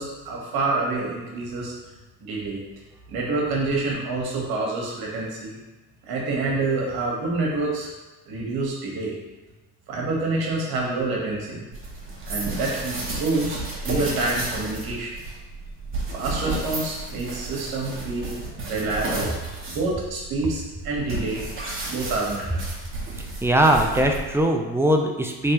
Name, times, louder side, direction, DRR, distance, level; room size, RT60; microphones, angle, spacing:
voice 1, 0.0-1.7 2.2-2.6 3.1-5.6 6.0-7.9 8.3-9.1 9.9-11.6 12.2-15.2 16.1-18.3 18.7-19.3 19.6-21.4 21.8-22.6, right 3 dB, 70° right, -3 dB, 1.2 m, -27 dB
sound 1, 11.7-24.5, right 2 dB, 35° right, 1.1 m, -32 dB
voice 2, 23.4-25.5, right 1 dB, 5° right, 2 dB, 0.4 m, -20 dB
3.2 x 3.1 x 2.9 m, 1.2 s
supercardioid pair, 70°, 38 cm